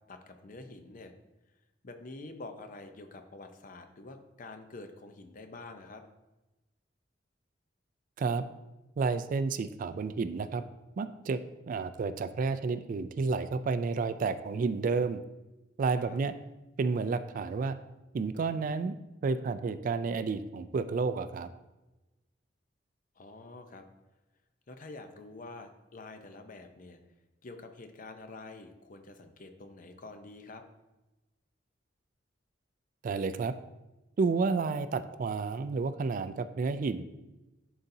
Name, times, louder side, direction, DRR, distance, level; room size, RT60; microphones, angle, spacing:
voice 1, 0.1-1.1 1.8-6.0 15.9-16.2 23.2-23.8 24.7-27.0 27.4-30.6, left 3 dB, 45° left, 7 dB, 0.6 m, -47 dB
voice 2, 9.0-10.6 11.0-11.4 11.7-15.2 15.8-16.3 16.8-17.8 18.1-18.9 19.2-21.5 33.0-33.5 34.2-37.0, right 4 dB, 45° right, 11 dB, 0.3 m, -30 dB
11.0 x 4.0 x 2.7 m, 1.0 s
head